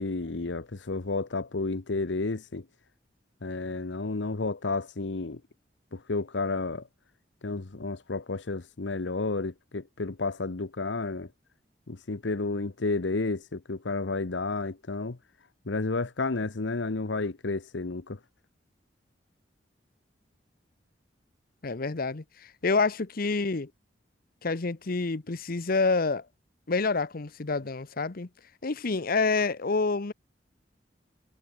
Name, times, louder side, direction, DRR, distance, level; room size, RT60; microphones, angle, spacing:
voice 1, 0.0-2.6 3.4-5.4 5.9-6.9 7.4-11.3 11.9-15.2 15.7-18.2, left 3 dB, 90° left, 1.0 m, -31 dB
voice 2, 21.6-23.7 24.4-26.3 26.7-28.3 28.6-30.1, left 4 dB, 55° left, 0.9 m, -28 dB
head